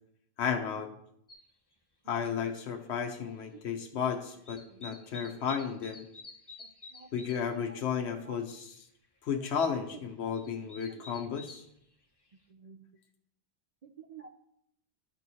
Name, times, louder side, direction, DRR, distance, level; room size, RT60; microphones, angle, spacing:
voice 1, 0.4-0.9 2.1-6.1 7.1-8.8 9.2-11.6, left 7 dB, 85° left, 4 dB, 1.0 m, -33 dB
sound 1, 1.3-1.4 2.8-2.9 3.2-4.0 4.3-7.6 8.0-8.1 8.2-8.6 9.0-9.1 10.0-11.7 12.3-12.4, left 3 dB, 25° left, 0.8 m, -49 dB
voice 2, 6.9-7.3 7.7-7.8 8.2-8.4 10.2-10.4 12.5-12.8 13.8-14.3, right 6 dB, 45° right, 4 dB, 0.5 m, -51 dB
12.0 x 4.6 x 4.1 m, 0.74 s
omnidirectional pair, 1.1 m